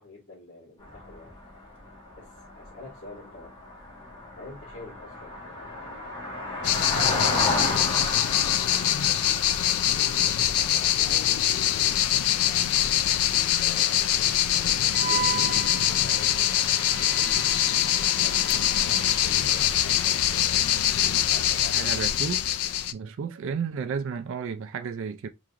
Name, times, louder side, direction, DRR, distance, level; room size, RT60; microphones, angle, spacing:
voice 1, 0.0-1.3 2.1-3.5 4.3-6.0 7.0-12.7 13.5-15.4 15.7-17.5 18.0-22.1, left 3 dB, 60° left, 1.7 m, -46 dB
sound 1, 0.8-13.7 14.0-14.2 14.4-14.5, left 2 dB, 25° left, 1.4 m, -34 dB
sound 2, 6.6-22.9, left 11 dB, 85° left, 0.4 m, -24 dB
Wind instrument woodwind instrument, 14.9-19.6, right 9 dB, 35° right, 0.8 m, -36 dB
voice 2, 21.7-22.4 22.9-25.3, right 6 dB, 60° right, 0.4 m, -32 dB
4.6 x 3.0 x 2.5 m
head